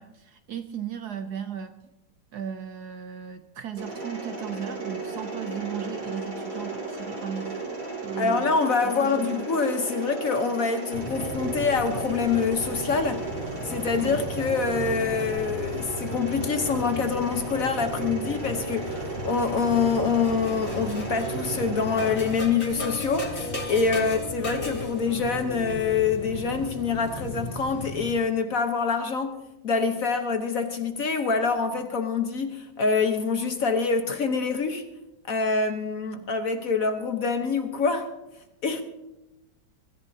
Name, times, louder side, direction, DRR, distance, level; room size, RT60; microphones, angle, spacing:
voice 1, 0.0-1.8 2.3-7.6 8.0-8.6 8.8-9.5 14.0-14.2 23.9-24.2 31.7-31.8, right 8 dB, 65° right, 1.0 m, -36 dB
Mechanisms, 3.8-22.3, right 3 dB, 85° right, 6.9 m, -35 dB
voice 2, 8.2-13.2 13.6-29.4 29.6-34.9 35.3-38.1 38.6-38.8, left 5 dB, 50° left, 1.2 m, -26 dB
sound 1, 10.9-28.1, left 1 dB, 35° left, 2.3 m, -36 dB
sound 2, 22.8-28.1, left 3 dB, 80° left, 1.9 m, -39 dB
23.5 x 14.0 x 2.8 m
omnidirectional pair, 2.1 m